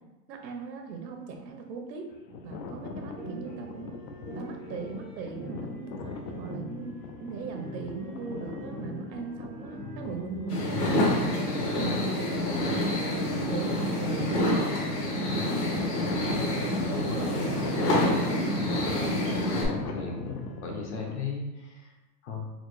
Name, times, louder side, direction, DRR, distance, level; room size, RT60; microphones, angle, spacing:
voice 1, 0.3-2.1 2.4-3.9 4.3-12.7 13.2-16.3 16.6-18.4, right 5 dB, 85° right, 4 dB, 0.9 m, -39 dB
sound 1, 2.1-21.2, left 4 dB, 85° left, 0.7 m, -40 dB
sound 2, 3.2-20.6, equal, 20° right, 0.4 m, -43 dB
sound 3, 10.5-19.6, left 1 dB, 65° left, 1.1 m, -28 dB
voice 2, 19.6-21.5 22.2-22.5, left 5 dB, 45° left, 1 dB, 0.6 m, -36 dB
4.0 x 2.1 x 3.1 m, 1.1 s
supercardioid pair, 170°, 50 cm